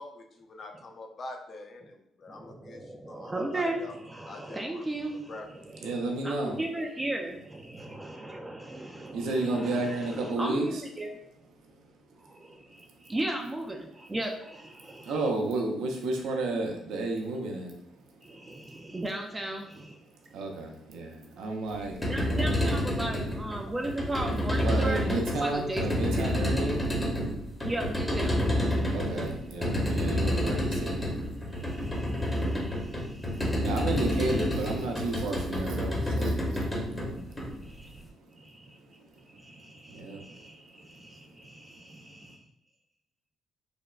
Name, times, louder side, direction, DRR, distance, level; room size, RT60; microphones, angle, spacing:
voice 1, 0.0-4.0 4.3-4.8 5.3-5.5, left 2 dB, 50° left, 3 dB, 0.5 m, -44 dB
voice 2, 2.3-11.1 12.2-15.1 18.2-20.0 22.0-25.1 25.4-25.8 26.2-26.3 27.6-29.0 31.5-33.7 37.2-37.3 37.6-38.0 38.4-38.8 39.4-42.4, right 1 dB, 20° right, 1 dB, 0.3 m, -37 dB
voice 3, 5.8-6.6 9.1-10.8 12.5-12.6 14.9-17.9 18.4-18.5 20.3-22.1 24.6-26.9 28.9-31.3 33.6-37.4 38.0-38.3 38.8-41.2 41.9-42.3, right 2 dB, 85° right, 2 dB, 0.5 m, -33 dB
sound 1, 21.8-38.0, equal, 15° left, 0.7 m, -29 dB
3.3 x 2.1 x 2.3 m, 0.75 s
cardioid pair, 90°, 0 cm